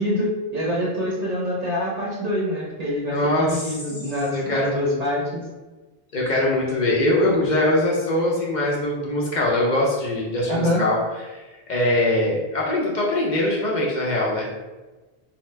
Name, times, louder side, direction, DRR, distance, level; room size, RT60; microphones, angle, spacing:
voice 1, 0.0-5.4 10.5-10.8, left 1 dB, 50° right, -4 dB, 0.6 m, -25 dB
voice 2, 3.0-3.8 4.3-5.0 6.1-11.0 11.3-14.5, left 1 dB, 55° left, -4 dB, 0.6 m, -22 dB
2.7 x 2.0 x 3.2 m, 1.2 s
omnidirectional pair, 1.0 m